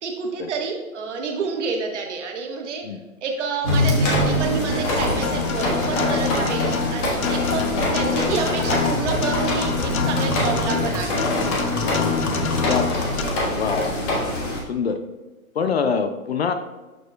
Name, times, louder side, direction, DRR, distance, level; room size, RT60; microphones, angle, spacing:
voice 1, 0.0-2.8 3.2-7.6 7.9-11.3, right 5 dB, 50° right, 2 dB, 1.5 m, -29 dB
sound 1, 3.6-14.6, left 1 dB, 25° left, 1.2 m, -24 dB
Acoustic guitar, 5.2-13.2, left 7 dB, 70° left, 0.9 m, -26 dB
sound 2, 7.0-7.1 7.5-13.5, left 1 dB, 90° left, 1.7 m, -34 dB
voice 2, 12.7-13.1 13.5-14.0 14.7-15.0 15.5-16.5, left 5 dB, 45° left, 9 dB, 0.5 m, -24 dB
12.0 x 4.4 x 2.2 m, 1.1 s
hypercardioid pair, 135°, 44 cm